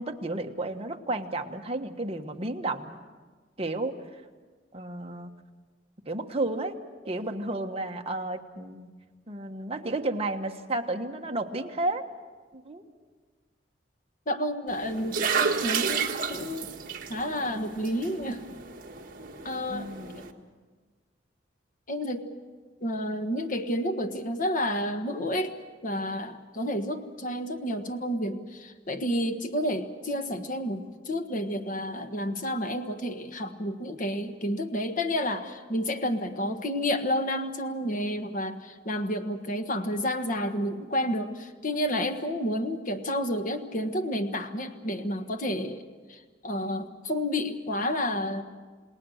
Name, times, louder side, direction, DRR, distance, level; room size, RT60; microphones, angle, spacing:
voice 1, 0.0-3.0 3.6-3.9 4.7-5.3 6.1-6.7 7.0-8.9 9.3-12.0 12.5-12.8 19.7-20.2, right 2 dB, 35° right, 3 dB, 1.4 m, -32 dB
voice 2, 14.3-16.7 17.1-18.4 19.4-19.9 21.9-22.3 22.8-25.6 25.8-45.8 46.1-48.4, equal, 45° left, 7 dB, 1.5 m, -30 dB
sound 1, 14.7-20.3, right 6 dB, 50° right, 1.7 m, -32 dB
29.0 x 19.0 x 6.5 m, 1.4 s
head